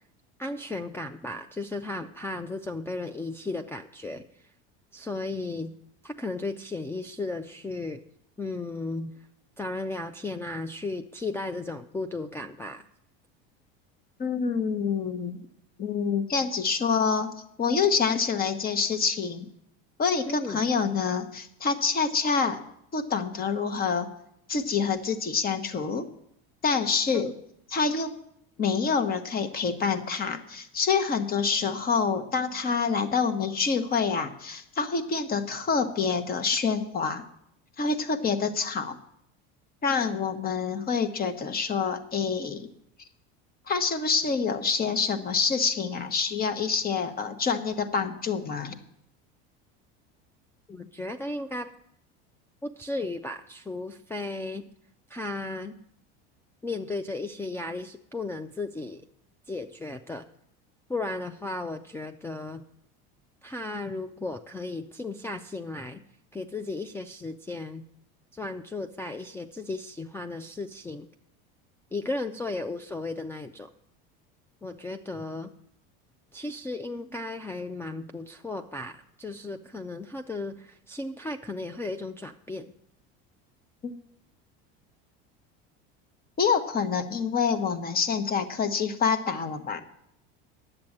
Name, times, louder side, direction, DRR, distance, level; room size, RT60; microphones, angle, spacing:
voice 1, 0.4-4.3 4.9-5.7 6.0-8.0 8.4-9.1 9.6-12.8 20.3-20.6 27.1-27.3 50.7-51.7 52.6-54.6 55.1-55.8 56.6-59.0 59.5-60.3 60.9-62.6 63.4-66.0 66.3-67.8 68.3-71.1 71.9-73.7 74.6-75.5 76.3-82.7, left 2 dB, 10° left, 8 dB, 0.4 m, -35 dB
voice 2, 14.2-15.4 15.8-17.3 17.6-19.5 20.0-22.6 22.9-24.1 24.5-26.1 26.6-27.3 27.7-28.1 28.6-37.2 37.8-39.0 39.8-42.7 43.7-48.8 83.8-83.9 86.4-89.8, left 5 dB, 30° left, 9 dB, 1.2 m, -27 dB
10.5 x 7.8 x 7.4 m, 0.73 s
supercardioid pair, 115°, 30 cm